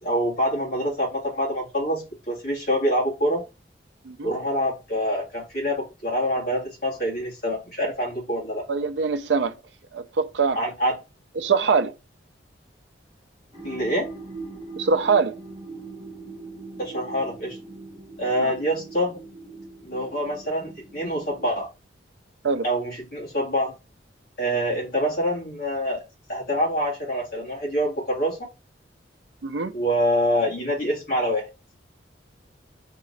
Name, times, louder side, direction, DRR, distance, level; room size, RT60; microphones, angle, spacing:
voice 1, 0.0-3.4 4.2-8.6 10.6-11.0 13.6-14.1 16.8-17.6 18.2-19.2 19.8-21.7 22.6-23.7 24.4-26.0 26.3-28.4 29.7-31.5, equal, 55° left, 2.1 m, -25 dB
voice 2, 8.7-9.5 9.9-10.6 11.4-11.9 14.8-15.4 18.4-18.5 22.4-22.6 29.4-29.7, right 5 dB, 70° right, 0.5 m, -23 dB
sound 1, 13.5-21.6, right 3 dB, 20° right, 1.9 m, -41 dB
3.9 x 3.7 x 3.2 m
head